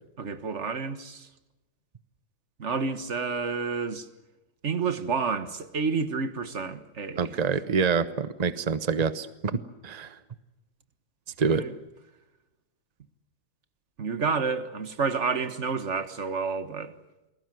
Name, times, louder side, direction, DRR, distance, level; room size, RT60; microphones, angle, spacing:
voice 1, 0.2-1.3 2.6-4.1 4.6-7.4 11.4-11.7 14.0-16.9, right 5 dB, 35° right, 1.5 m, -30 dB
voice 2, 7.2-10.2 11.4-11.6, right 5 dB, 75° right, 0.3 m, -26 dB
28.5 x 20.5 x 7.8 m
omnidirectional pair, 2.3 m